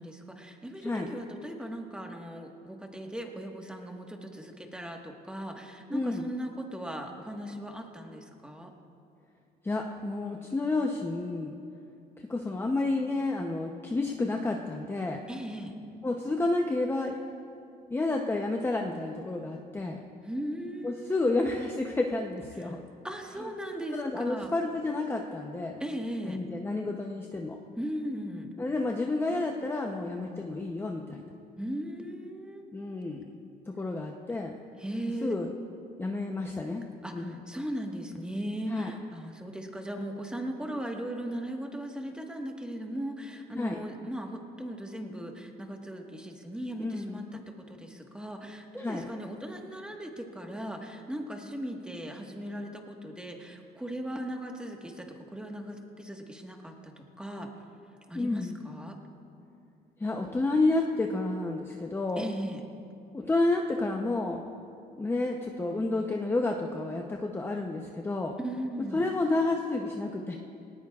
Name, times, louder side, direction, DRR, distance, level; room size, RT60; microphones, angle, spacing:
voice 1, 0.0-8.7 15.3-15.7 20.2-21.4 22.6-22.8 23.0-24.5 25.8-26.4 27.8-28.5 31.6-32.6 34.8-35.3 37.0-57.5 58.1-59.0 62.2-62.6 68.4-69.0, right 1 dB, 5° right, 2 dB, 1.5 m, -38 dB
voice 2, 5.9-6.2 9.6-11.5 12.3-15.2 16.0-17.2 17.9-20.0 20.8-22.9 23.9-25.8 26.2-27.6 28.6-31.3 32.7-33.3 33.7-34.5 35.2-35.5 36.0-36.8 37.1-37.3 38.7-38.9 43.6-43.8 46.8-47.2 48.8-49.1 58.1-58.6 60.0-62.3 63.1-64.4 65.0-68.3 68.9-70.4, left 2 dB, 15° left, 2 dB, 0.7 m, -30 dB
19.0 x 18.5 x 2.4 m, 2.5 s
cardioid pair, 110°, 17 cm